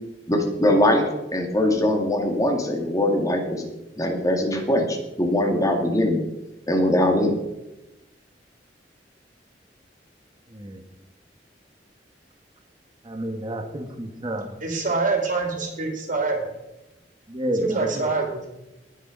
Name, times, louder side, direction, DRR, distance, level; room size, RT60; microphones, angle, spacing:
voice 1, 0.3-3.7 4.0-6.2 6.7-7.3, left 1 dB, 20° left, 3 dB, 2.2 m, -22 dB
voice 2, 13.0-14.5 17.3-18.1, right 1 dB, 25° right, 5 dB, 1.3 m, -30 dB
voice 3, 14.6-16.4 17.6-18.5, right 3 dB, 45° right, 2 dB, 2.8 m, -25 dB
19.5 x 6.6 x 5.2 m, 0.96 s
head